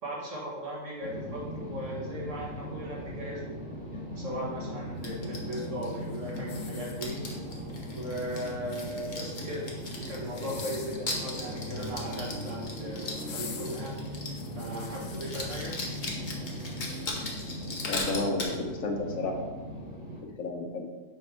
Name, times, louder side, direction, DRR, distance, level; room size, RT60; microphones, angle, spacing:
voice 1, 0.0-3.4 4.2-7.2 7.9-9.6 10.1-15.7, equal, 70° right, -4 dB, 2.2 m, -38 dB
sound 1, 1.0-20.2, equal, 20° left, 1.9 m, -39 dB
sound 2, 5.0-6.6 7.0-14.5 14.8-14.9 15.1-18.6, left 2 dB, 40° left, 1.1 m, -38 dB
sound 3, 6.4-7.4 8.5-9.3 10.3-11.1 12.2-12.6 13.1-15.3 15.9-16.0, left 6 dB, 60° left, 0.9 m, -45 dB
voice 2, 17.9-19.5 20.4-20.8, left 2 dB, 80° left, 2 dB, 1.4 m, -31 dB
5.6 x 5.3 x 4.4 m, 1.3 s
omnidirectional pair, 1.4 m